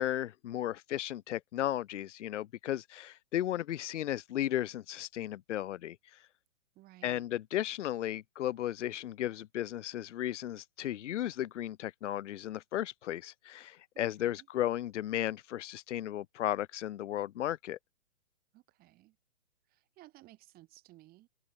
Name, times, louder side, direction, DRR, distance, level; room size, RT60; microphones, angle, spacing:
voice 1, 0.0-6.2 7.0-17.8, left 12 dB, 70° left, 0.6 m, -35 dB
voice 2, 6.8-7.3 13.9-14.5 18.5-19.2 19.7-21.3, right 17 dB, 25° right, 3.7 m, -57 dB
hypercardioid pair, 145°, 38 cm